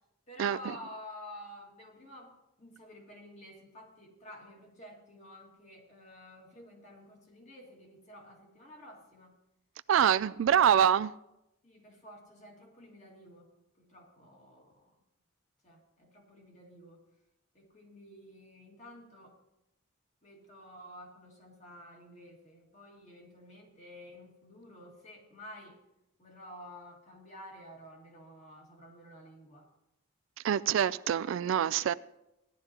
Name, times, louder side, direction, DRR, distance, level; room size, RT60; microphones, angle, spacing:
voice 1, 0.3-2.3 2.6-9.4 11.6-13.5 13.8-14.9 15.6-17.0 17.5-19.4 20.2-25.8 26.2-29.7, left 1 dB, 35° left, 2.1 m, -51 dB
voice 2, 9.9-11.1 30.4-31.9, right 9 dB, 65° right, 0.3 m, -25 dB
16.5 x 11.5 x 2.9 m
head